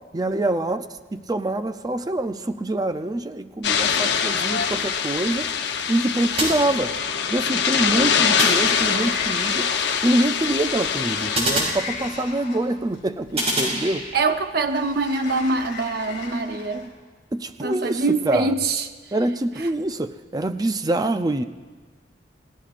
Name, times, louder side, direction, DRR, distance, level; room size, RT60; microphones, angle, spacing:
voice 1, 0.1-0.8 1.1-5.5 5.9-6.9 7.3-9.7 10.0-14.1 17.3-18.5 19.1-21.4, right 1 dB, 20° right, 10 dB, 0.5 m, -25 dB
sound 1, 3.6-11.4, left 7 dB, 70° left, 0.8 m, -23 dB
sound 2, 6.4-7.3 8.4-9.3 11.3-12.5 13.4-14.4, right 1 dB, 35° right, 6.1 m, -27 dB
Sliding door, 8.7-16.9, left 5 dB, 55° left, 4.4 m, -38 dB
voice 2, 14.1-16.9 17.6-18.9 19.6-19.7, right 3 dB, 60° right, 7 dB, 0.8 m, -24 dB
29.5 x 19.0 x 2.5 m, 1.4 s
head